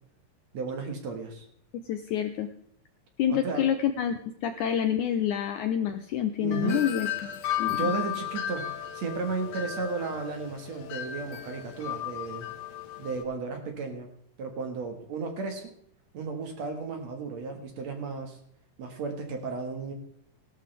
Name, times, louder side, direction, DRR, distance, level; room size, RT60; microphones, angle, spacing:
voice 1, 0.5-1.5 3.3-3.6 6.4-6.8 7.7-8.7 8.9-12.5 13.0-14.1 14.4-15.7 16.1-18.4 18.8-19.9, right 4 dB, 55° right, 4 dB, 2.4 m, -34 dB
voice 2, 1.7-2.5 3.2-7.1 7.6-7.9, left 9 dB, 85° left, 8 dB, 1.8 m, -28 dB
Wind chime, 6.5-13.2, left 10 dB, 60° left, 1.7 m, -35 dB
18.0 x 12.0 x 3.4 m, 0.72 s
omnidirectional pair, 4.3 m